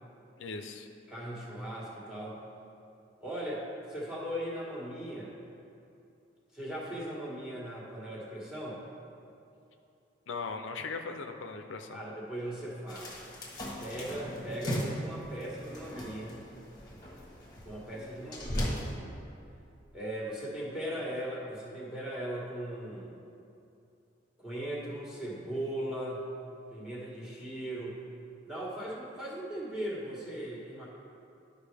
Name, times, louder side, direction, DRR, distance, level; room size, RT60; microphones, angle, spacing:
voice 1, 0.4-0.9 10.3-12.0, left 4 dB, 80° left, 5 dB, 0.5 m, -39 dB
voice 2, 1.1-2.4 3.2-5.3 6.5-8.8 11.9-13.3 13.8-16.4 17.6-18.7 19.9-23.1 24.4-26.2 26.7-28.0 28.4-30.9, right 1 dB, 5° right, -5 dB, 1.4 m, -38 dB
sound 1, 12.9-18.9, equal, 20° left, 1.2 m, -38 dB
12.0 x 5.2 x 3.4 m, 2.7 s
head